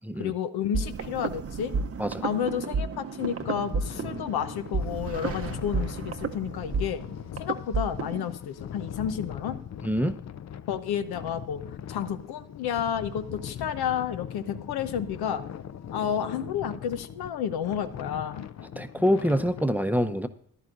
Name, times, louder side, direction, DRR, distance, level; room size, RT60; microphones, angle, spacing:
voice 1, 0.2-1.7 2.2-7.0 7.4-9.6 10.7-11.6 11.9-15.4 15.9-18.5, left 8 dB, 85° left, 10 dB, 0.8 m, -31 dB
sound 1, 0.7-8.3, right 4 dB, 40° right, 0.8 m, -32 dB
sound 2, 3.2-19.6, left 9 dB, 45° left, 0.5 m, -40 dB
voice 2, 9.8-10.2 18.8-20.3, equal, 5° right, 10 dB, 0.7 m, -25 dB
14.0 x 11.0 x 2.5 m, 0.64 s
cardioid pair, 60°, 37 cm